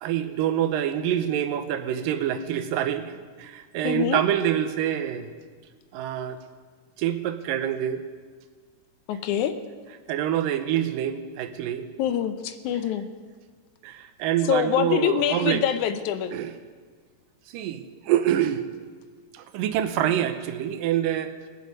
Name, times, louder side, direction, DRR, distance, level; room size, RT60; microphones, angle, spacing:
voice 1, 0.0-5.3 5.9-6.4 7.0-8.0 10.1-11.9 13.8-15.6 16.3-16.5 17.5-18.6 19.3-21.3, right 10 dB, 85° right, 9 dB, 2.5 m, -26 dB
voice 2, 3.8-4.2 9.1-9.6 12.0-13.1 14.5-16.4, left 9 dB, 75° left, 10 dB, 1.9 m, -25 dB
21.5 x 8.4 x 5.3 m, 1.6 s
omnidirectional pair, 3.8 m